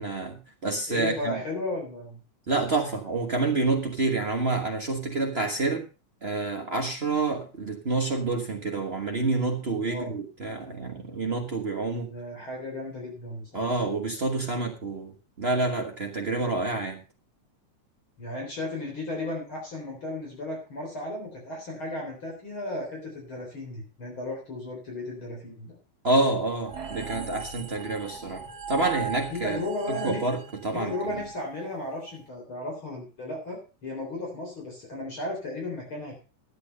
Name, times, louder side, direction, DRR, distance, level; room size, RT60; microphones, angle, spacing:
voice 1, 0.0-1.4 2.5-5.8 6.2-12.1 13.5-17.0 26.0-31.2, right 3 dB, 80° right, 2 dB, 0.5 m, -28 dB
voice 2, 0.9-2.2 9.8-10.2 12.1-13.7 18.2-25.8 29.3-30.2 30.7-36.2, left 2 dB, 40° left, 0 dB, 4.4 m, -35 dB
sound 1, 26.7-32.1, right 6 dB, 40° right, 1.5 m, -38 dB
12.0 x 8.7 x 5.3 m, 0.33 s
omnidirectional pair, 3.5 m